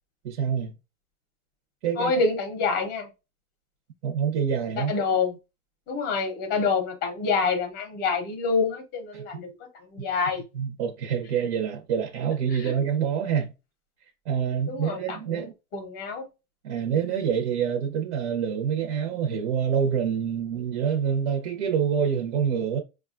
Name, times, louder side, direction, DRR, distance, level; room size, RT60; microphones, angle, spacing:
voice 1, 0.2-0.7 1.8-2.1 4.0-4.9 9.1-9.2 10.5-13.5 14.3-15.5 16.6-22.8, right 7 dB, 50° right, 0.8 m, -26 dB
voice 2, 2.0-3.1 4.8-5.4 5.9-10.4 12.5-12.7 14.7-16.3, left 4 dB, 25° left, 0.7 m, -27 dB
5.0 x 2.3 x 2.5 m
supercardioid pair, 155°, 45 cm